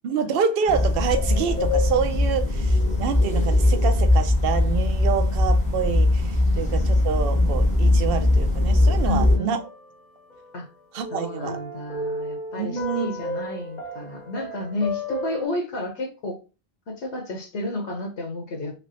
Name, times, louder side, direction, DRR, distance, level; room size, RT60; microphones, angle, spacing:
voice 1, 0.0-9.6 10.9-11.5 12.5-13.1, right 6 dB, 60° right, 0.7 m, -27 dB
sound 1, 0.7-9.4, left 1 dB, 5° left, 0.7 m, -20 dB
voice 2, 9.0-9.6 10.5-10.7 11.1-16.4 16.9-18.9, left 2 dB, 75° left, 1.1 m, -31 dB
sound 2, 9.5-10.6 11.0-15.5, left 1 dB, 45° left, 0.7 m, -34 dB
3.3 x 3.1 x 2.6 m
omnidirectional pair, 1.2 m